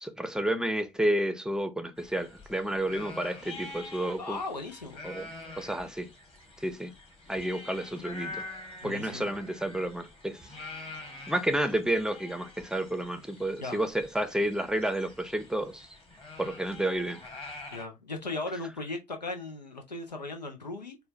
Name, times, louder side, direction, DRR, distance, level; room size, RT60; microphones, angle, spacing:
voice 1, 0.0-4.4 5.0-5.3 5.6-6.1 6.6-6.9 7.3-8.4 8.8-10.4 11.3-15.9 16.4-17.2, right 1 dB, 5° right, 0.6 m, -30 dB
sound 1, 2.0-17.8, left 2 dB, 25° left, 1.9 m, -46 dB
voice 2, 4.2-5.0 8.8-9.3 13.6-13.8 17.7-21.0, left 2 dB, 90° left, 0.5 m, -37 dB
4.3 x 2.2 x 3.2 m
figure-of-eight pair, 45°, 21 cm